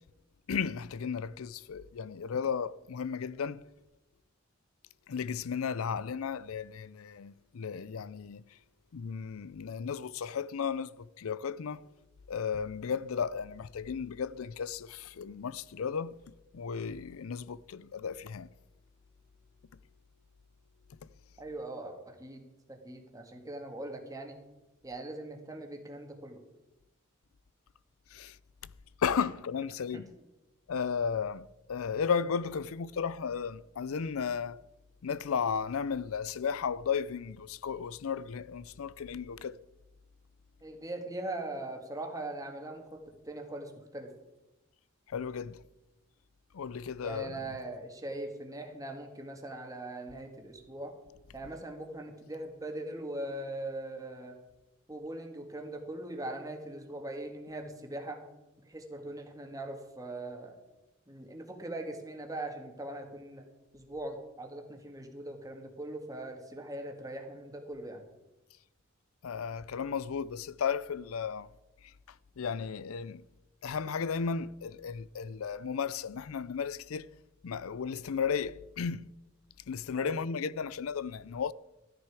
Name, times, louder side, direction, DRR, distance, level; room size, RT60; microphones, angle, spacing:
voice 1, 0.5-3.6 5.1-8.5 8.9-11.9 12.3-16.2 16.5-18.5 28.1-28.4 29.0-30.1 30.7-34.6 35.0-39.6 45.1-45.6 46.5-47.4 69.2-71.5 71.8-73.2 73.6-77.1 77.4-79.1 79.7-81.5, left 6 dB, 85° left, 0.5 m, -34 dB
voice 2, 21.4-22.4 22.7-24.4 24.8-26.4 29.9-30.0 40.6-44.1 47.0-50.9 51.3-54.4 54.9-58.2 58.6-60.5 61.1-63.4 63.7-68.0 80.0-80.2, right 1 dB, 15° right, 1.7 m, -41 dB
13.5 x 9.9 x 4.9 m
head